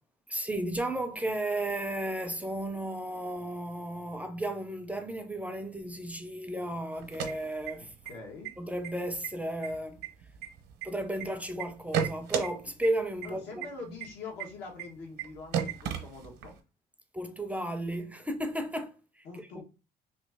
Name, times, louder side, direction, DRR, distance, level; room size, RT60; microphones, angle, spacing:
voice 1, 0.3-7.9 8.6-10.0 10.8-13.7 17.1-19.6, right 1 dB, 10° right, 0.4 m, -34 dB
sound 1, 7.0-8.1 8.4-8.5 8.8-9.3 9.6-11.2 11.6-12.5 12.8-12.9 13.2-13.3 13.6-13.7 14.0-14.1 14.4-14.5 14.8-14.9 15.2-15.3 15.5-16.6, right 8 dB, 80° right, 0.7 m, -32 dB
voice 2, 7.8-8.5 13.2-16.5 19.2-19.6, left 4 dB, 85° left, 1.3 m, -44 dB
3.0 x 2.7 x 3.4 m
cardioid pair, 110°, 17 cm